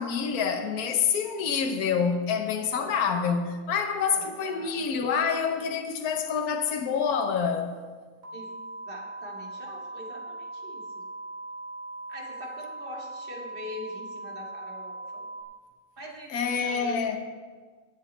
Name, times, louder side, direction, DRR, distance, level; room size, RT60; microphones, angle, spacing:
voice 1, 0.0-7.7 16.3-17.2, left 6 dB, 70° left, 1.4 m, -27 dB
voice 2, 4.0-4.9 8.3-8.5 8.9-11.0 12.1-15.3 16.0-17.2, left 1 dB, 35° right, 2.2 m, -43 dB
sound 1, 8.2-15.4, right 2 dB, 50° right, 3.2 m, -40 dB
19.5 x 7.2 x 4.3 m
omnidirectional pair, 1.7 m